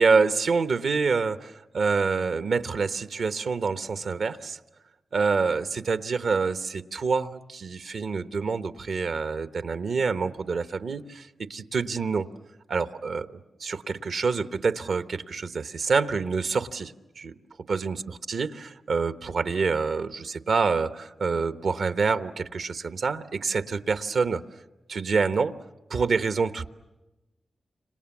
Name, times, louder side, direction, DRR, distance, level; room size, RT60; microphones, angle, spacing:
voice 1, 0.0-4.6 5.1-12.3 12.7-17.3 17.7-18.0 18.3-24.4 24.9-25.6 25.9-26.7, right 4 dB, 75° right, 10 dB, 0.9 m, -27 dB
30.0 x 27.0 x 7.2 m, 1.1 s
cardioid pair, 75°, 0 cm